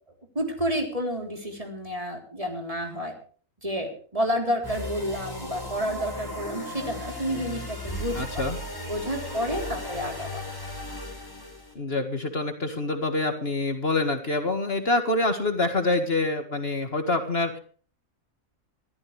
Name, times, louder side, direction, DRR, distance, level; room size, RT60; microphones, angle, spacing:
voice 1, 0.4-3.1 3.6-8.4 8.8-10.4, equal, 25° right, 3 dB, 3.7 m, -30 dB
sound 1, 4.6-11.7, left 1 dB, 15° left, 5.1 m, -36 dB
voice 2, 8.2-8.6 11.8-17.6, left 2 dB, 45° left, 6 dB, 2.0 m, -26 dB
22.5 x 14.0 x 3.3 m, 0.41 s
omnidirectional pair, 1.4 m